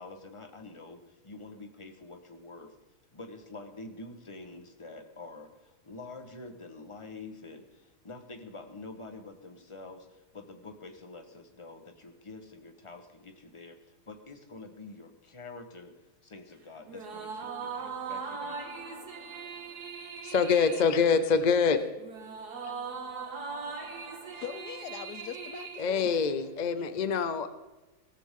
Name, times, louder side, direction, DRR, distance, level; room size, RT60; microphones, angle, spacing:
voice 1, 0.0-2.8 3.1-18.6, left 3 dB, 20° left, 1.3 m, -47 dB
sound 1, 16.8-26.6, right 5 dB, 80° right, 2.1 m, -40 dB
voice 2, 20.2-21.8 25.8-27.5, left 5 dB, 40° left, 0.6 m, -25 dB
voice 3, 24.3-26.1 26.8-26.9, left 9 dB, 85° left, 1.3 m, -42 dB
17.5 x 14.0 x 3.8 m
omnidirectional pair, 1.7 m